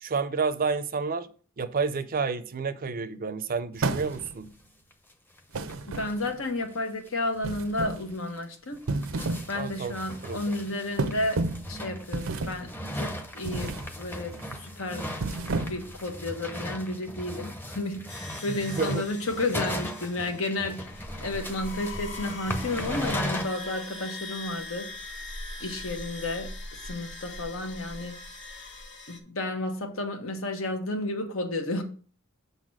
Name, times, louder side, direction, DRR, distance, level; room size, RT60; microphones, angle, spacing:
voice 1, 0.0-1.3 1.6-4.5 9.5-9.9 10.2-10.5 18.5-19.0, right 4 dB, 45° right, 0.5 m, -30 dB
sound 1, 3.8-4.3 4.6-4.7 4.9-5.0 5.4-5.5 5.7-6.3 6.6-6.7 7.1-7.2 7.7-7.8 8.4-23.4, left 1 dB, 10° left, 0.7 m, -37 dB
sound 2, 3.8-4.5 5.5-6.4 7.4-8.1 8.7-9.5 9.9-10.1 11.0-11.7 12.1-12.7 13.4-13.9 14.3-14.6 15.1-16.0, right 3 dB, 85° right, 0.6 m, -31 dB
voice 2, 5.8-8.8 9.5-15.1 15.7-24.9 25.6-28.2 29.1-31.8, left 2 dB, 80° left, 1.4 m, -32 dB
sound 3, 18.1-29.2, left 2 dB, 60° left, 1.8 m, -41 dB
6.7 x 4.0 x 6.3 m
head